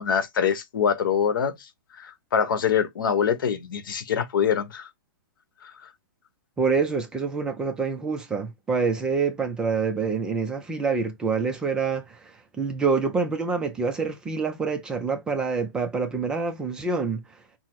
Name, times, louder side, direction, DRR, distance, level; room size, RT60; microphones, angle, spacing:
voice 1, 0.0-1.6 2.0-4.9 5.6-5.7, left 7 dB, 65° left, 1.0 m, -24 dB
voice 2, 6.6-17.4, right 5 dB, 5° right, 0.3 m, -26 dB
5.7 x 2.0 x 4.5 m
hypercardioid pair, 170°, 12 cm